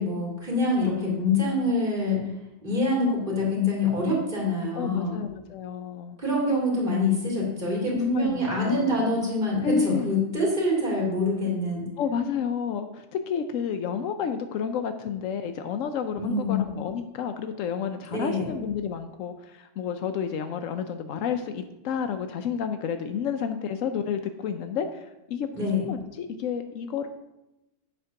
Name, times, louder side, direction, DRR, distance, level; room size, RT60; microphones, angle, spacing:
voice 1, 0.0-2.2 2.6-5.2 6.2-11.9 16.2-16.6 18.1-18.5 25.5-25.8, left 2 dB, 40° right, -4 dB, 2.7 m, -25 dB
voice 2, 4.7-6.2 7.9-9.1 9.6-10.1 12.0-27.1, left 7 dB, 80° left, 7 dB, 1.0 m, -30 dB
9.2 x 4.4 x 5.8 m, 0.95 s
omnidirectional pair, 1.3 m